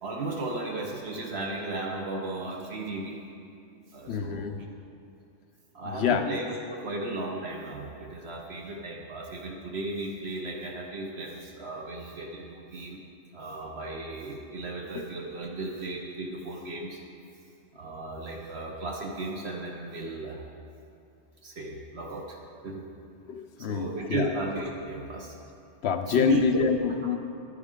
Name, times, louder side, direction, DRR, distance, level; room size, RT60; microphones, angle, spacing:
voice 1, 0.0-3.2 3.9-4.5 5.7-13.0 13.3-17.0 17.7-20.4 21.4-22.4 22.6-22.9 23.6-25.3 26.1-26.6, right 2 dB, 60° right, 0 dB, 1.1 m, -35 dB
voice 2, 4.1-4.6 5.8-6.2 23.3-24.3 25.8-27.2, left 6 dB, 65° left, 7 dB, 0.8 m, -26 dB
10.5 x 9.7 x 3.7 m, 2.5 s
omnidirectional pair, 1.2 m